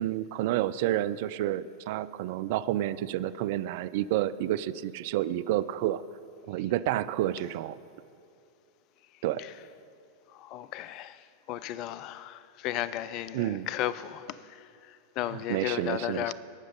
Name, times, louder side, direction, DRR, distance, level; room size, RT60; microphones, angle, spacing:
voice 1, 0.0-6.0 6.5-7.8 9.2-9.4 13.3-13.7 15.3-16.3, right 13 dB, 50° right, 0.3 m, -29 dB
voice 2, 10.3-16.3, left 12 dB, 40° left, 0.4 m, -35 dB
18.0 x 6.3 x 5.5 m
figure-of-eight pair, 90°, 0 cm